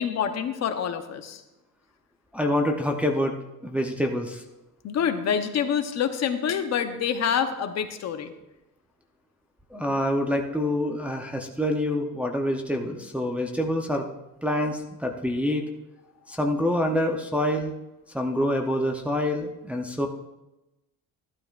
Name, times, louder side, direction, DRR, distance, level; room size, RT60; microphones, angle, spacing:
voice 1, 0.0-1.4 4.8-8.3, left 8 dB, 50° left, 8 dB, 0.8 m, -27 dB
voice 2, 2.3-3.3 3.6-4.4 9.7-14.1 14.4-15.6 16.3-17.7 18.1-20.1, left 1 dB, 5° right, 1 dB, 0.6 m, -26 dB
13.5 x 12.0 x 2.4 m, 0.97 s
cardioid pair, 165°, 35 cm